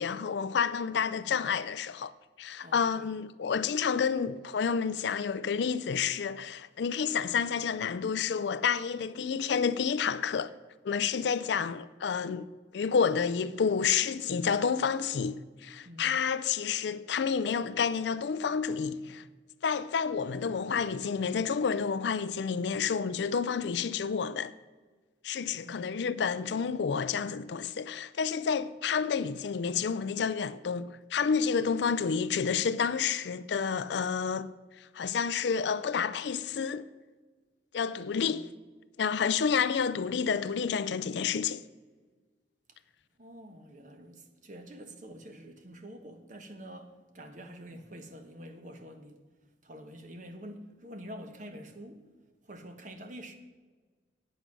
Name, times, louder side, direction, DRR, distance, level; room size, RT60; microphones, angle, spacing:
voice 1, 0.0-2.1 2.4-10.5 10.8-12.5 12.7-19.2 19.6-24.5 25.2-34.5 34.8-36.9 37.7-38.5 39.0-41.6, left 6 dB, 65° left, 0.4 m, -29 dB
voice 2, 2.6-3.1 15.8-16.2 25.6-25.9 38.1-38.4 43.2-49.2 49.6-52.0 52.4-53.3, equal, 40° right, 1.1 m, -47 dB
9.1 x 8.1 x 6.0 m
head